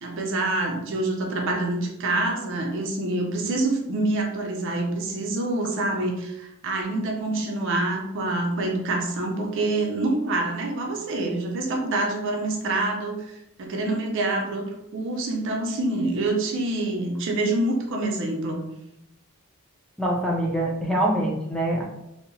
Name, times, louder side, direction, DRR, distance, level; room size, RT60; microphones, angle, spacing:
voice 1, 0.0-18.7, right 2 dB, 60° right, 2 dB, 0.5 m, -26 dB
voice 2, 20.0-21.8, right 1 dB, 5° left, -2 dB, 0.4 m, -24 dB
2.7 x 2.0 x 2.6 m, 0.84 s
head